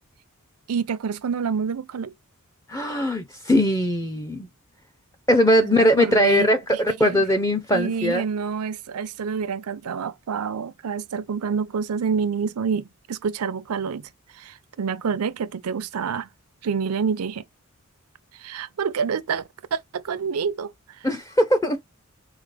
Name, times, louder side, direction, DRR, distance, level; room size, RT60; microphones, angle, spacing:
voice 1, 0.7-2.1 5.6-7.2 7.7-16.3 16.6-17.4 18.3-19.4 19.7-21.1, right 6 dB, 90° right, 0.5 m, -28 dB
voice 2, 2.7-4.5 5.3-8.2 21.0-21.8, equal, 15° left, 0.4 m, -20 dB
4.7 x 2.0 x 3.2 m
head